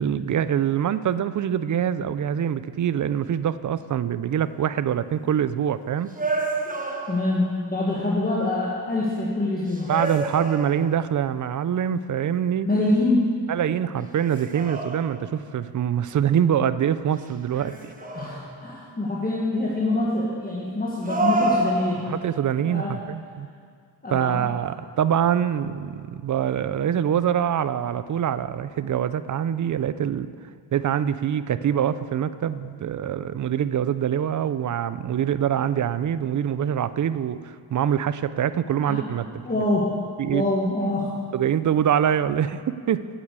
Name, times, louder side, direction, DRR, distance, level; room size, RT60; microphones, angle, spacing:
voice 1, 0.0-6.1 9.9-12.7 13.5-17.9 22.1-23.5 24.1-30.3 30.7-39.6 40.2-40.4 41.3-43.1, right 9 dB, 45° right, 14 dB, 0.4 m, -24 dB
sound 1, 6.2-7.5 9.7-11.1 14.1-15.4 17.5-18.6 21.0-22.4, right 2 dB, 20° right, 1.1 m, -28 dB
voice 2, 7.1-9.9 12.6-13.4 18.0-22.0 22.6-22.9 24.0-24.5 38.8-39.0 39.4-39.9 40.3-41.1, left 2 dB, 20° left, -5 dB, 1.5 m, -25 dB
8.7 x 8.2 x 8.2 m, 2.1 s
cardioid pair, 110°, 42 cm